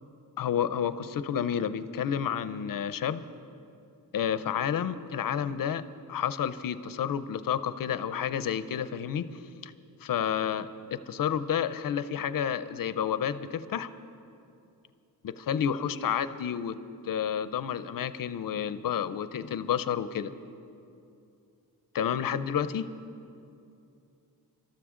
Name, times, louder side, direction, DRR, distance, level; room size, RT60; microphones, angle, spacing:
voice 1, 0.4-3.2 4.1-5.8 6.1-9.3 9.6-9.7 10.0-13.9 15.2-16.8 17.0-20.3 21.9-22.9, left 8 dB, 60° left, 13 dB, 0.6 m, -30 dB
24.5 x 13.0 x 3.7 m, 2.6 s
wide cardioid pair, 170°, 38 cm